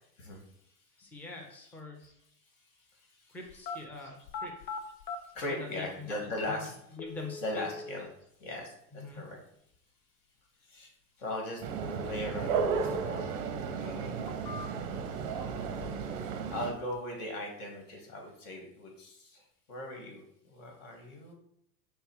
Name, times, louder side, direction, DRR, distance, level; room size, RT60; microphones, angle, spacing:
voice 1, 1.0-2.0 3.3-4.5 5.5-7.7 8.9-9.2, left 3 dB, 5° left, 0 dB, 0.6 m, -44 dB
voice 2, 2.9-4.2 4.6-6.8 7.1-8.1 8.4-9.4 10.6-10.9 11.2-14.7 16.5-21.3, left 1 dB, 50° left, 1 dB, 1.7 m, -40 dB
sound 1, 3.5-3.8 4.2-5.2 6.2-6.3 7.0-8.0 12.0-13.0 13.4-13.5 14.1-15.0 15.4-16.1 16.4-17.0, left 4 dB, 85° left, 0.6 m, -42 dB
sound 2, 11.6-16.7, right 6 dB, 40° right, 0.6 m, -34 dB
5.4 x 2.1 x 4.4 m, 0.73 s
hypercardioid pair, 105°, 49 cm